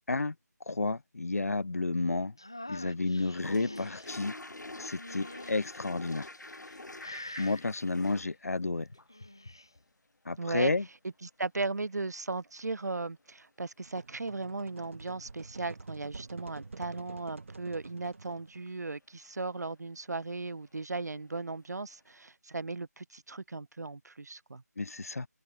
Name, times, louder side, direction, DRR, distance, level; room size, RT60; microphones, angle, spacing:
voice 1, 0.7-2.3 2.7-4.3 4.8-6.3 7.1-8.9 10.2-10.8 24.8-25.3, left 3 dB, 55° left, 1.5 m, -31 dB
sound 1, 2.4-4.1 4.9-5.8 6.4-6.8 7.0-7.6 8.9-9.7, left 1 dB, 15° left, 0.3 m, -45 dB
sound 2, 3.2-8.3 8.9-9.8 11.9-12.0 12.2-12.3 14.6-14.8 20.8-20.9 21.1-21.2, left 2 dB, 85° left, 6.7 m, -46 dB
voice 2, 10.4-10.7 11.2-24.6, right 3 dB, 70° right, 0.8 m, -37 dB
sound 3, 13.8-18.7, right 3 dB, 45° right, 1.7 m, -48 dB
open air
figure-of-eight pair, 175°, 9 cm